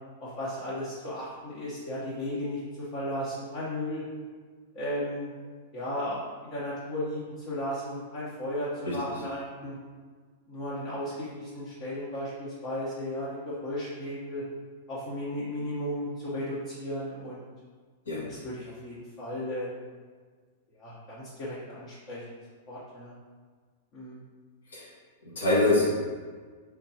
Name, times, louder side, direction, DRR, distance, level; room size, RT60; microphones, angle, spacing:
voice 1, 0.2-4.0 4.7-5.3 5.7-9.8 10.5-14.4 14.9-17.4 18.3-19.8 20.8-22.2 22.7-23.1 23.9-24.2, left 1 dB, 45° left, -8 dB, 1.0 m, -35 dB
voice 2, 25.2-25.9, left 2 dB, 80° left, -6 dB, 1.3 m, -24 dB
3.7 x 3.3 x 2.8 m, 1.5 s
hypercardioid pair, 105°, 0 cm